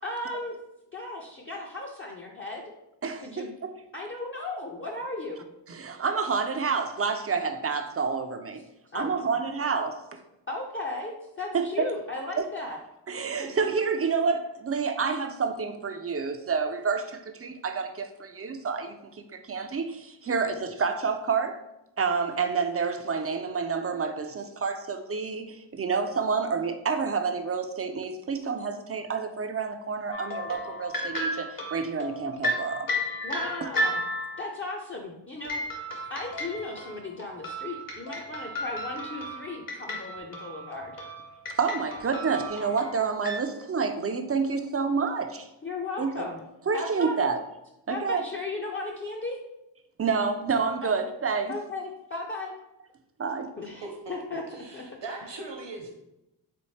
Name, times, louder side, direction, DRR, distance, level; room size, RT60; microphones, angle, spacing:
voice 1, 0.0-0.6 0.9-2.7 3.2-3.5 3.9-5.4 8.9-9.1 10.5-12.8 13.4-13.7 33.2-33.9 34.4-35.6 36.1-40.9 45.6-46.4 46.7-47.3 47.9-49.4 51.5-52.5 53.6-54.4 54.7-54.8, left 2 dB, 30° left, -2 dB, 0.5 m, -36 dB
voice 2, 3.0-3.5 5.7-8.6 8.9-10.2 11.5-11.9 12.4-12.5 13.1-21.6 22.0-32.9 33.6-33.7 41.6-45.5 46.0-46.3 46.7-47.4 47.9-48.2 50.0-51.6 53.2-53.5, right 5 dB, 35° right, 7 dB, 0.4 m, -29 dB
sound 1, 30.1-34.5 35.4-43.4, equal, 50° left, 1.0 m, -34 dB
voice 3, 54.3-55.9, right 3 dB, 75° right, 1 dB, 1.1 m, -39 dB
4.2 x 3.4 x 3.2 m, 0.90 s
wide cardioid pair, 95°, 44 cm